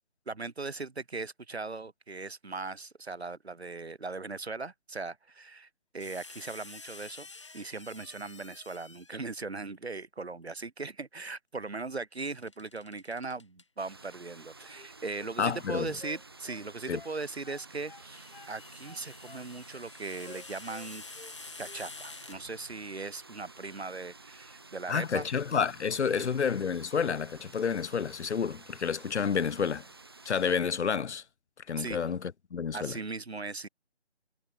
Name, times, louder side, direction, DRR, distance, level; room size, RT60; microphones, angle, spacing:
voice 1, 0.3-5.7 5.9-7.3 7.5-21.0 21.6-25.2 26.1-26.3 31.8-32.0 32.7-33.7, right 3 dB, 70° right, 2.3 m, -39 dB
sound 1, 6.0-9.3 12.2-13.6 15.4-15.6 17.7-22.9, left 4 dB, 25° left, 2.6 m, -49 dB
sound 2, 13.8-30.6, right 3 dB, 20° right, 1.7 m, -52 dB
sound 3, 14.6-15.4 15.6-17.2 17.4-18.6 18.8-19.9 20.2-21.3 21.6-21.9, left 3 dB, 50° left, 1.5 m, -52 dB
voice 2, 15.4-15.9 16.9-17.0 24.9-29.8 30.3-31.2 31.7-33.0, left 6 dB, 80° left, 0.7 m, -30 dB
figure-of-eight pair, 180°, 34 cm